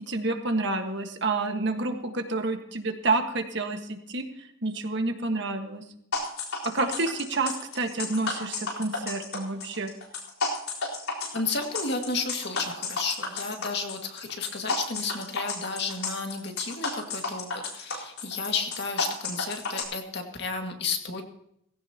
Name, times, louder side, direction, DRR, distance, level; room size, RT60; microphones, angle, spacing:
voice 1, 0.1-5.8 6.6-9.9, right 3 dB, 55° right, 5 dB, 1.5 m, -29 dB
sound 1, 6.1-19.8, left 3 dB, 80° left, 4.1 m, -32 dB
voice 2, 11.3-21.2, left 4 dB, 50° left, 3 dB, 2.0 m, -32 dB
18.5 x 16.0 x 2.9 m, 0.74 s
head